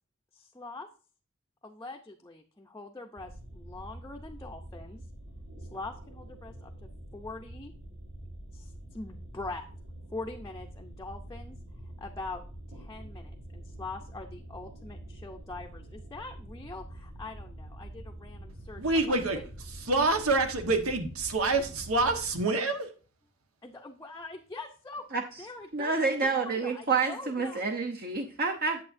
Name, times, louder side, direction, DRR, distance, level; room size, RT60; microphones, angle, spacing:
voice 1, 0.3-0.9 1.6-5.0 5.6-7.8 8.5-9.7 10.1-11.6 12.0-12.4 12.7-19.4 23.6-25.1 25.4-25.9 26.2-27.6, left 3 dB, 15° left, 0.6 m, -43 dB
sound 1, 3.2-22.3, right 1 dB, 70° right, 4.4 m, -46 dB
voice 2, 18.8-19.4 19.7-22.9, right 2 dB, 90° right, 1.3 m, -27 dB
voice 3, 25.7-28.8, right 4 dB, 45° right, 0.7 m, -28 dB
8.7 x 7.8 x 2.6 m
head